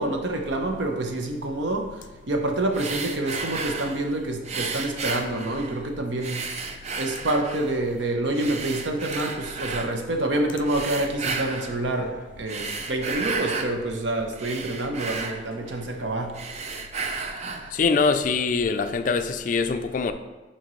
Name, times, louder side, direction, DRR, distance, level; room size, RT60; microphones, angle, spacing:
voice 1, 0.0-6.6 7.0-16.4, right 2 dB, 80° right, 3 dB, 0.8 m, -27 dB
sound 1, 2.7-4.0 4.4-5.9 6.2-7.8 8.3-9.9 10.6-11.8 12.3-13.7 14.1-16.0 16.3-17.7, right 4 dB, 35° right, 0.4 m, -33 dB
voice 2, 17.7-20.1, left 4 dB, 45° left, 9 dB, 0.3 m, -23 dB
7.4 x 4.3 x 3.1 m, 1.2 s
head